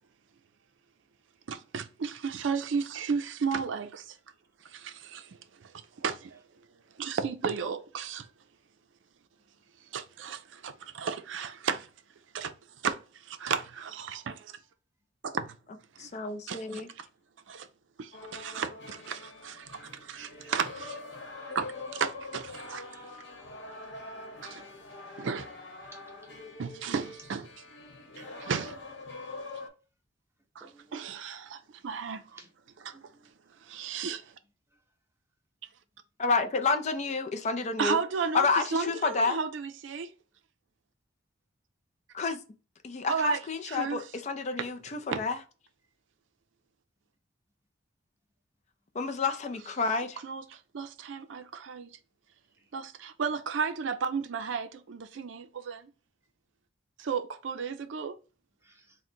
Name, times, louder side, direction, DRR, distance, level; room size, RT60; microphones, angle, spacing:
voice 1, 1.5-4.2 4.6-5.7 6.0-6.4 7.0-8.3 9.9-11.9 12.3-12.5 12.8-14.6 15.2-15.6 16.0-16.1 16.5-17.1 17.5-17.7 18.0-21.0 21.5-22.8 24.4-24.6 25.2-25.5 26.6-27.5 28.2-28.8 30.6-30.7 30.9-32.2 32.8-33.0 33.6-34.3 37.8-40.1 43.1-43.4 43.7-44.0 44.6-44.7 45.1-45.2 50.2-51.9 52.7-55.9 57.0-58.2, right 5 dB, 75° right, 0.4 m, -34 dB
voice 2, 16.0-16.9 36.2-38.0 38.3-39.4 42.1-42.4 42.8-45.4 48.9-50.2, left 4 dB, 35° left, 0.4 m, -29 dB
sound 1, 18.1-29.7, left 2 dB, 65° left, 1.0 m, -44 dB
voice 3, 25.9-26.3 30.6-31.0 32.3-32.5 32.9-33.3 52.6-52.7 58.6-59.0, right 3 dB, 15° right, 0.8 m, -56 dB
3.7 x 2.1 x 4.3 m
head